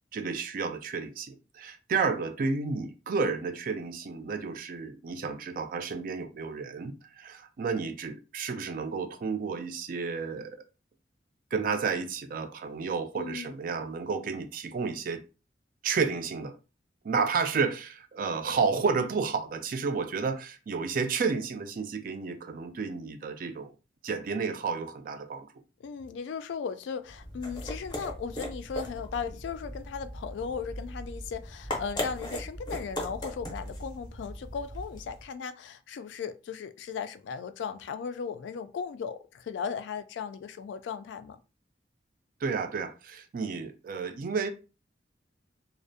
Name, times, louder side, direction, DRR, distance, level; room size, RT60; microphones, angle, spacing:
voice 1, 0.1-10.6 11.5-15.2 15.8-16.6 17.0-23.7 24.0-25.5 42.4-44.5, right 5 dB, 50° right, 0.3 m, -31 dB
voice 2, 13.1-13.5 25.8-41.4, left 6 dB, 85° left, 0.3 m, -37 dB
sound 1, 27.1-35.3, left 1 dB, 25° left, 0.5 m, -38 dB
2.5 x 2.0 x 2.5 m
head